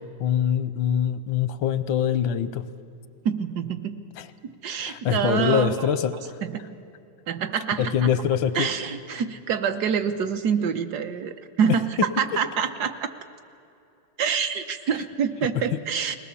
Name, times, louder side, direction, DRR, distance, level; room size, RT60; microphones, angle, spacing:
voice 1, 0.2-2.6 4.2-4.3 4.8-6.4 7.8-8.7 11.7-11.8 14.9-15.0 15.7-15.8, left 8 dB, 85° left, 13 dB, 1.5 m, -24 dB
voice 2, 3.2-4.0 4.4-5.9 6.4-6.7 7.3-8.1 8.5-13.1 14.2-16.2, right 7 dB, 65° right, 8 dB, 1.2 m, -26 dB
20.5 x 18.5 x 7.0 m, 2.7 s
omnidirectional pair, 2.0 m